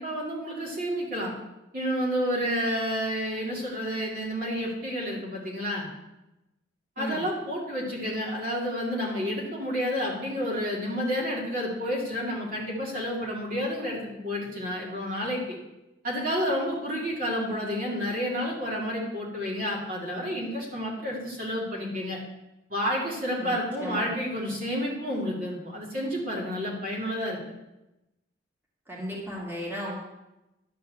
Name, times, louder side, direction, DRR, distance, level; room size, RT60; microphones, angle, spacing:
voice 1, 0.0-1.3 1.7-5.9 7.0-15.6 16.0-22.2 22.7-27.4, equal, 50° right, -3 dB, 2.4 m, -30 dB
voice 2, 28.9-29.9, equal, 10° right, -4 dB, 2.3 m, -34 dB
11.0 x 4.6 x 7.8 m, 0.96 s
head